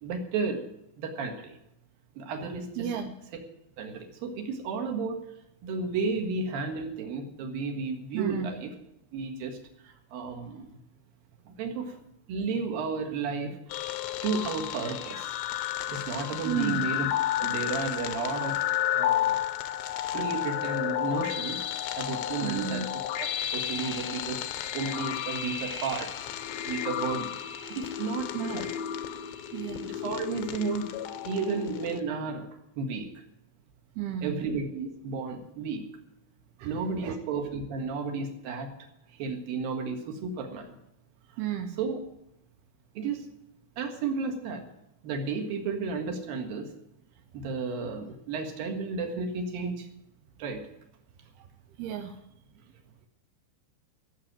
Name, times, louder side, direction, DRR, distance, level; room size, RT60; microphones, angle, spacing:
voice 1, 0.0-0.6 1.0-1.6 2.2-2.9 3.8-5.2 5.6-8.7 9.1-9.6 9.8-10.7 11.5-11.9 12.3-13.6 14.2-15.3 15.9-17.1 17.4-18.6 18.9-19.3 20.1-21.6 22.0-22.8 23.1-23.3 23.5-26.1 26.7-27.4 27.7-28.7 29.8-30.9 31.2-32.5 32.8-33.1 34.2-35.8 36.6-38.7 39.1-40.7 41.8-42.0 42.9-43.3 43.8-44.6 45.0-46.7 47.3-49.9 50.4-50.7, right 4 dB, 60° right, 4 dB, 3.0 m, -33 dB
voice 2, 2.8-3.1 8.1-8.5 16.5-16.8 22.4-22.8 28.3-28.7 29.5-29.8 34.0-34.5 36.6-37.1 41.4-41.8 51.8-52.2, right 9 dB, 80° right, 5 dB, 2.4 m, -33 dB
sound 1, 13.7-32.0, left 11 dB, 80° left, 2.9 m, -32 dB
15.0 x 7.5 x 9.0 m, 0.83 s
omnidirectional pair, 5.4 m